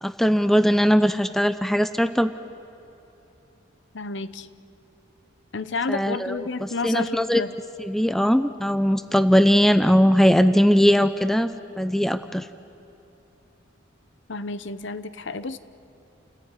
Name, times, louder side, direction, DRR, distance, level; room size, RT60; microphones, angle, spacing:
voice 1, 0.0-2.3 5.9-7.4 7.8-11.5 11.8-12.5, equal, ahead, 12 dB, 0.5 m, -20 dB
voice 2, 3.9-4.5 5.5-7.6 14.3-15.6, left 3 dB, 70° left, 14 dB, 0.9 m, -30 dB
29.5 x 15.0 x 9.8 m, 3.0 s
head